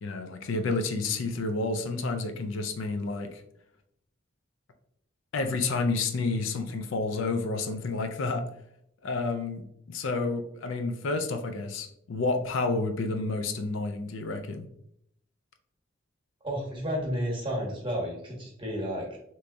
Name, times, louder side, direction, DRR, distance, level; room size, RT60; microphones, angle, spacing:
voice 1, 0.0-3.4 5.3-8.4 9.0-14.7, left 3 dB, 75° left, 7 dB, 0.4 m, -30 dB
voice 2, 16.4-19.2, equal, 25° right, -2 dB, 1.0 m, -32 dB
3.3 x 3.0 x 2.5 m, 0.73 s
head